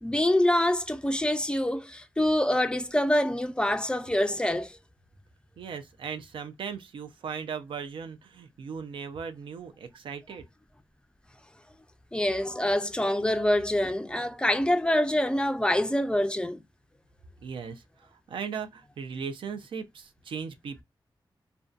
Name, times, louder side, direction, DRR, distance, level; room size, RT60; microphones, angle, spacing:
voice 1, 0.0-4.8 12.1-16.6, left 1 dB, 10° left, 0.3 m, -25 dB
voice 2, 5.6-10.5 17.4-20.8, right 6 dB, 85° right, 0.4 m, -38 dB
2.5 x 2.2 x 2.3 m
wide cardioid pair, 100°, 8 cm